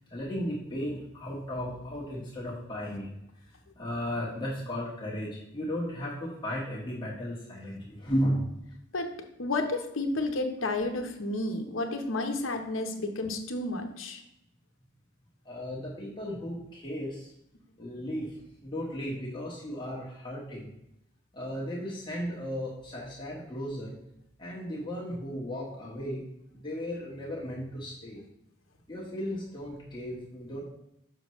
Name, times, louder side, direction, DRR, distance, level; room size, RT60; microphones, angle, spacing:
voice 1, 0.1-3.1 3.8-8.5 15.4-17.3 17.8-20.7 21.3-23.9 24.4-26.2 26.5-28.2 28.9-30.6, equal, 20° left, -6 dB, 1.3 m, -35 dB
voice 2, 9.4-14.2, left 2 dB, 75° left, 4 dB, 0.9 m, -31 dB
6.8 x 5.7 x 3.1 m, 0.82 s
head